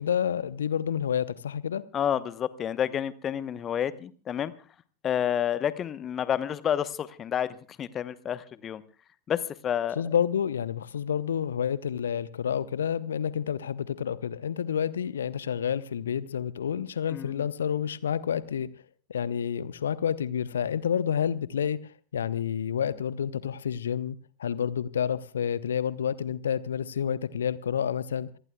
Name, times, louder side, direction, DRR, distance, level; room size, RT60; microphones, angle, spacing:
voice 1, 0.0-1.8 10.0-18.7 19.1-21.8 22.1-28.3, left 8 dB, 65° left, 0.8 m, -29 dB
voice 2, 1.9-4.5 5.0-8.8 9.3-10.0 17.1-17.4, left 9 dB, 25° left, 1.0 m, -29 dB
27.0 x 19.5 x 2.3 m
figure-of-eight pair, 90°, 0 cm